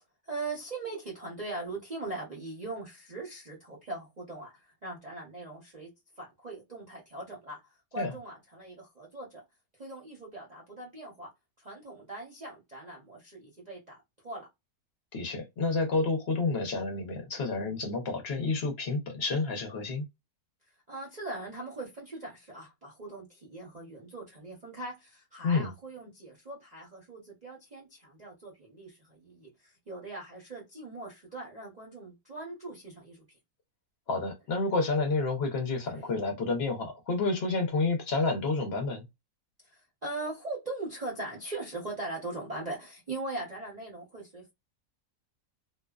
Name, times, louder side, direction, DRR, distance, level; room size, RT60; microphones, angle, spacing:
voice 1, 0.2-5.9 6.2-7.6 7.9-9.4 9.8-11.3 11.6-14.0 14.2-14.5 20.9-33.3 35.9-36.1 39.6-44.5, right 2 dB, 35° right, 0.7 m, -40 dB
voice 2, 15.1-20.1 25.4-25.7 34.1-39.1, left 3 dB, 50° left, 0.9 m, -29 dB
2.7 x 2.1 x 2.3 m
omnidirectional pair, 1.6 m